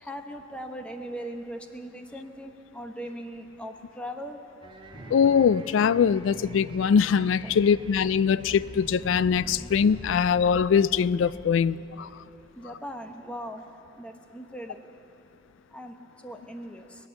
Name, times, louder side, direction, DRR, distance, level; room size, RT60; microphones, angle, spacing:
voice 1, 0.0-4.4 7.4-7.6 12.6-13.6 14.0-14.9 15.7-16.0 16.2-16.9, equal, 5° left, 0.8 m, -39 dB
sound 1, 4.6-12.5, right 1 dB, 25° right, 0.9 m, -44 dB
Thunder, 4.8-8.7 9.0-9.1, right 1 dB, 25° left, 4.6 m, -50 dB
voice 2, 5.1-12.1, left 7 dB, 80° left, 0.3 m, -22 dB
22.5 x 8.4 x 7.1 m
head